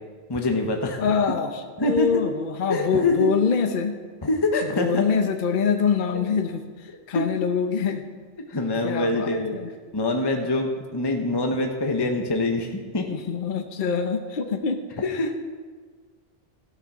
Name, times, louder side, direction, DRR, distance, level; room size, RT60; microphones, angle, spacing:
voice 1, 0.3-1.1 1.8-2.1 2.7-3.3 4.2-5.0 7.1-7.3 8.5-9.6 9.9-13.1 15.0-15.3, left 2 dB, 25° left, 3 dB, 0.9 m, -24 dB
voice 2, 1.0-4.0 4.7-8.1 8.8-9.7 13.1-15.3, left 6 dB, 50° left, 6 dB, 0.9 m, -25 dB
14.0 x 8.3 x 5.9 m, 1.5 s
omnidirectional pair, 1.1 m